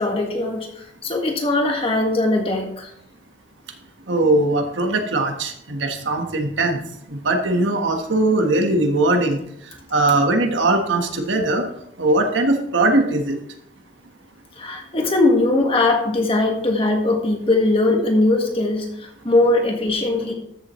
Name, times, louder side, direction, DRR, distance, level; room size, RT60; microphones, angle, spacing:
voice 1, 0.0-2.9 14.6-20.3, left 2 dB, 30° left, 2 dB, 1.6 m, -20 dB
voice 2, 4.1-6.8 7.1-9.4 9.9-11.7 12.0-13.3, right 2 dB, 75° right, 4 dB, 1.4 m, -20 dB
13.5 x 7.1 x 3.1 m, 0.73 s
head